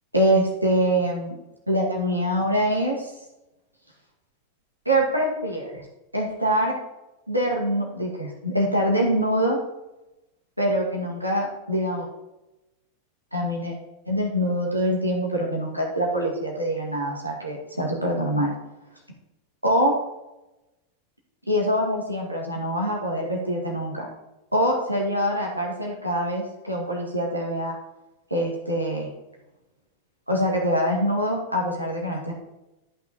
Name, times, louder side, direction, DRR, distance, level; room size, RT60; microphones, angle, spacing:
voice 1, 0.1-1.4 1.7-3.1 4.9-5.8 6.1-6.7 7.3-9.6 10.6-12.1 13.3-13.7 14.1-18.5 19.6-20.0 21.5-24.1 24.5-27.7 28.3-29.1 30.3-32.3, equal, 90° right, -2 dB, 2.3 m, -24 dB
13.5 x 5.8 x 4.3 m, 0.94 s
figure-of-eight pair, 90°, 0 cm